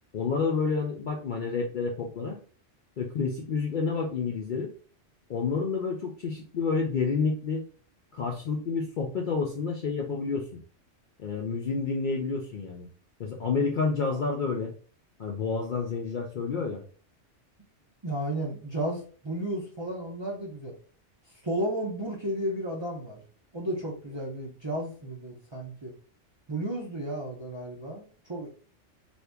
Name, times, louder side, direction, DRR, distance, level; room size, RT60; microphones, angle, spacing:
voice 1, 0.1-2.4 3.0-4.7 5.3-7.7 8.1-10.6 11.2-12.9 13.2-14.7 15.2-16.8, left 4 dB, 55° left, 0 dB, 0.6 m, -29 dB
voice 2, 18.0-20.7 21.4-23.2 23.5-25.9 26.5-28.5, right 1 dB, 30° right, -3 dB, 0.6 m, -33 dB
2.8 x 2.6 x 3.4 m, 0.41 s
omnidirectional pair, 1.2 m